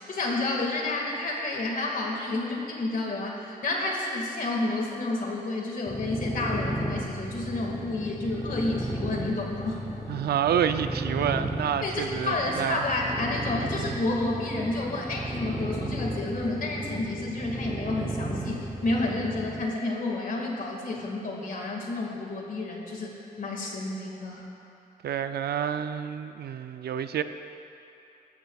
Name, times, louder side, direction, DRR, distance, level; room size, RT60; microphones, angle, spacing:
voice 1, 0.1-9.8 11.8-24.4, left 2 dB, 60° left, -1 dB, 1.9 m, -30 dB
sound 1, 5.9-19.7, right 1 dB, ahead, 0.9 m, -34 dB
voice 2, 10.1-12.8 25.0-27.2, right 9 dB, 85° right, 10 dB, 0.5 m, -28 dB
15.5 x 12.5 x 2.3 m, 2.9 s
wide cardioid pair, 130°, 16 cm